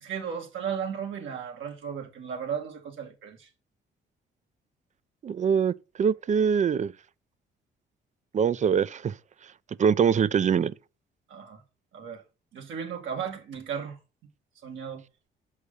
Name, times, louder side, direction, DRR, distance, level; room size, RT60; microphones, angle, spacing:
voice 1, 0.0-3.5 11.3-11.6 11.9-12.2 12.5-14.0 14.6-15.0, right 7 dB, 80° right, 2.1 m, -35 dB
voice 2, 5.2-6.9 8.3-9.1 9.8-10.7, right 7 dB, 35° right, 0.5 m, -23 dB
6.5 x 5.5 x 6.8 m
cardioid pair, 90°, 20 cm